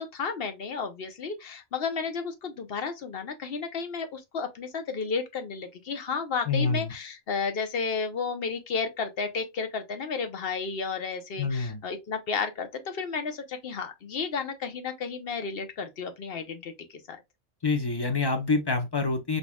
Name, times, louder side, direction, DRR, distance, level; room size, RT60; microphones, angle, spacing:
voice 1, 0.0-17.2, left 5 dB, 50° left, 0.9 m, -32 dB
voice 2, 6.5-6.9 11.4-11.8 17.6-19.4, left 4 dB, 25° left, 0.5 m, -26 dB
4.7 x 4.1 x 2.3 m
omnidirectional pair, 1.3 m